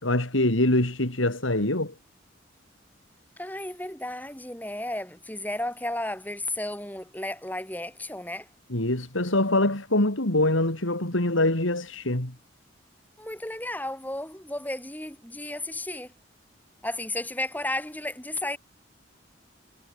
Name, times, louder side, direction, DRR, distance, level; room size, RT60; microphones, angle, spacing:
voice 1, 0.0-1.9 8.7-12.3, left 1 dB, 90° left, 4.0 m, -24 dB
voice 2, 3.4-8.5 13.2-16.1 16.8-18.6, left 1 dB, 10° left, 6.5 m, -33 dB
head